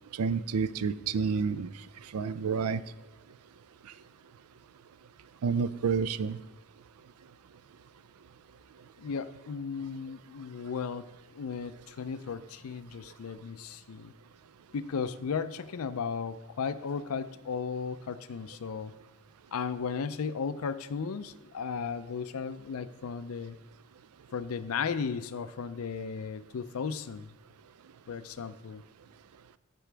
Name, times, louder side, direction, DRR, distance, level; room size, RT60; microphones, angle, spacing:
voice 1, 0.1-1.7 2.1-2.8 5.4-6.4, right 5 dB, 90° right, 15 dB, 0.4 m, -29 dB
voice 2, 9.0-11.1 11.3-14.1 14.7-18.9 19.5-23.6 24.3-27.3 28.1-28.8, left 6 dB, 80° left, 14 dB, 0.4 m, -35 dB
13.5 x 6.1 x 3.4 m, 1.1 s
head